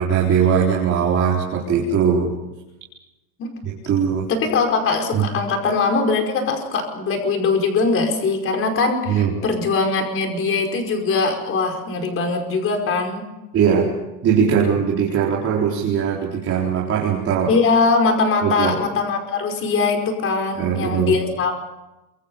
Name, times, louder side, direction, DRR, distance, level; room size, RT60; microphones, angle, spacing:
voice 1, 0.0-2.3 3.6-4.3 5.1-5.3 9.1-9.3 13.5-13.9 14.2-17.5 18.4-18.7 20.6-21.2, right 7 dB, 25° right, -3 dB, 4.2 m, -20 dB
voice 2, 4.3-13.3 17.5-21.7, left 4 dB, 25° left, 4 dB, 5.1 m, -21 dB
28.0 x 23.0 x 5.6 m, 1.0 s
supercardioid pair, 160°, 50 cm